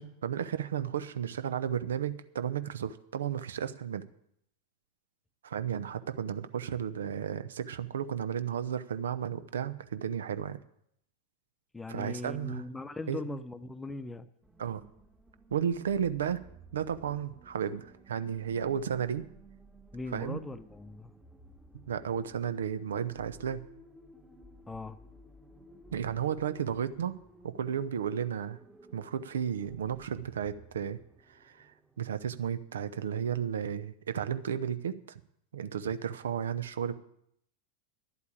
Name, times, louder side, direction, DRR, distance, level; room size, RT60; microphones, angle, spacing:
voice 1, 0.0-4.0 5.4-10.6 11.9-12.6 13.1-13.2 14.6-14.8 15.5-16.5 16.7-19.2 20.1-20.4 21.9-23.7 25.9-27.2 27.4-28.6 28.9-31.0 31.3-31.7 32.0-35.2 35.5-37.0, right 8 dB, 65° right, 13 dB, 0.8 m, -33 dB
voice 2, 11.7-14.3 19.9-21.1 24.7-25.0, left 2 dB, 10° left, 12 dB, 0.8 m, -39 dB
sound 1, 14.4-32.7, right 1 dB, 5° right, 1.3 m, -56 dB
11.0 x 8.4 x 8.6 m, 0.72 s
figure-of-eight pair, 90°, 0 cm